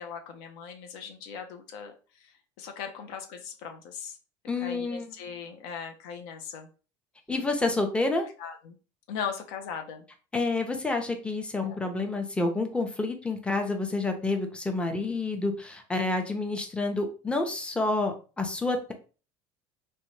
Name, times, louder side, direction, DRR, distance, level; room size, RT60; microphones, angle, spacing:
voice 1, 0.0-4.2 4.6-6.7 8.4-8.7 9.1-10.1 11.6-11.8, left 7 dB, 75° left, 6 dB, 0.5 m, -39 dB
voice 2, 4.5-5.1 7.3-8.2 10.3-18.9, left 2 dB, 10° left, 4 dB, 0.6 m, -29 dB
2.6 x 2.1 x 3.0 m, 0.35 s
supercardioid pair, 90°, 12 cm